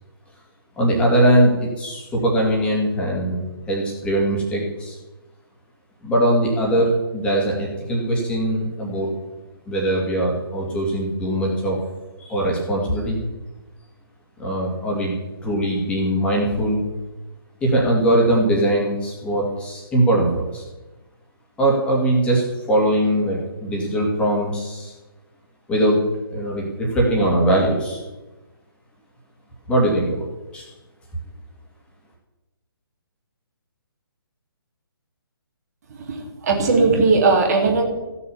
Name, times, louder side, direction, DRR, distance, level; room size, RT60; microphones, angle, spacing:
voice 1, 0.8-5.0 6.0-9.1 9.7-11.8 12.2-13.2 14.4-16.8 17.6-20.6 21.6-24.9 25.7-26.0 26.3-28.0 29.7-30.3 30.5-30.7, right 1 dB, 10° left, -3 dB, 2.5 m, -21 dB
voice 2, 36.1-37.8, right 4 dB, 40° right, 1 dB, 2.7 m, -18 dB
15.0 x 7.0 x 7.2 m, 1.1 s
figure-of-eight pair, 140°, 13 cm